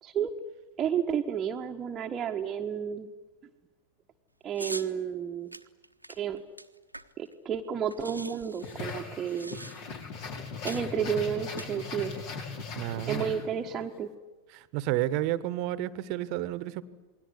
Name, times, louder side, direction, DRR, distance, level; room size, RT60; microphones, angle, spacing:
voice 1, 0.8-3.1 4.4-5.5 6.2-6.4 7.2-9.6 10.6-12.1 13.1-14.1, right 8 dB, 25° right, 2 dB, 1.5 m, -31 dB
sound 1, 4.6-4.9 5.5-7.3 7.6-7.7 7.9-10.0 10.7-10.9 11.4-12.2, right 1 dB, 90° right, 1.3 m, -43 dB
sound 2, 8.6-13.8, left 4 dB, 45° left, 5.0 m, -39 dB
voice 2, 12.7-13.4 14.5-16.8, right 14 dB, 45° right, 16 dB, 1.4 m, -31 dB
28.5 x 21.5 x 9.7 m, 1.2 s
figure-of-eight pair, 90°, 0 cm